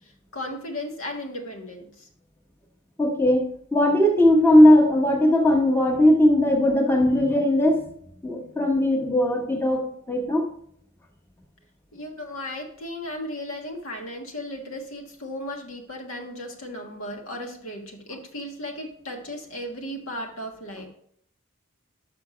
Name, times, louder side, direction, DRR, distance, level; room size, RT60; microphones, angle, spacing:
voice 1, 0.3-2.1 11.9-20.9, left 1 dB, 80° left, 1 dB, 1.5 m, -35 dB
voice 2, 3.0-3.4 3.7-7.8 8.2-10.5, left 1 dB, 10° left, 0 dB, 1.1 m, -18 dB
6.1 x 5.9 x 4.9 m, 0.66 s
head